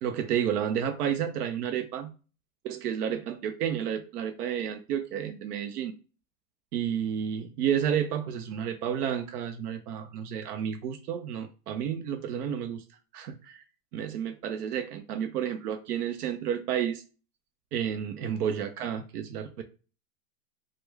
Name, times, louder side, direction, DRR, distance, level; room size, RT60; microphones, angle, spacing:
voice 1, 0.0-2.1 2.6-5.9 6.7-12.8 13.1-13.6 13.9-17.0 17.7-19.6, right 9 dB, 70° right, 6 dB, 0.7 m, -31 dB
3.1 x 2.2 x 3.3 m, 0.35 s
supercardioid pair, 150°, 48 cm